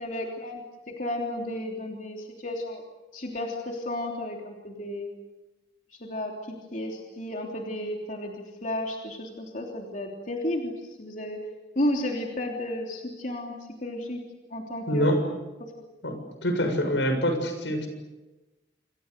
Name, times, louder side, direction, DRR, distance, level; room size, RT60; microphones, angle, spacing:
voice 1, 0.0-2.8 3.1-5.1 6.0-11.4 11.7-13.5 13.8-14.2 14.5-15.1 15.8-15.9, left 1 dB, 45° left, 0 dB, 3.3 m, -33 dB
voice 2, 14.9-15.2 16.0-17.9, equal, 85° left, 6 dB, 7.0 m, -25 dB
27.5 x 26.5 x 6.8 m, 1.1 s
head